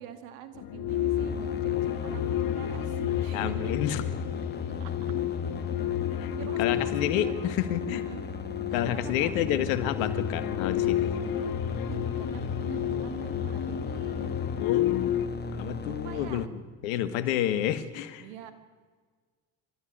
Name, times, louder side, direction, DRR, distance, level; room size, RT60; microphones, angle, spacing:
voice 1, 0.0-3.9 4.8-4.9 6.3-7.4 7.9-8.3 8.7-9.3 11.9-14.4 15.9-16.4 18.2-18.5, right 10 dB, 90° right, 9 dB, 2.3 m, -45 dB
sound 1, 0.6-15.3, left 11 dB, 60° left, 1.3 m, -31 dB
sound 2, 0.9-16.5, left 4 dB, 25° left, 1.5 m, -37 dB
voice 2, 3.3-4.0 6.1-6.3 6.6-8.0 8.7-11.1 14.5-15.2 15.5-18.2, left 11 dB, 85° left, 13 dB, 1.6 m, -30 dB
29.0 x 13.5 x 9.0 m, 1.5 s
hypercardioid pair, 65°, 39 cm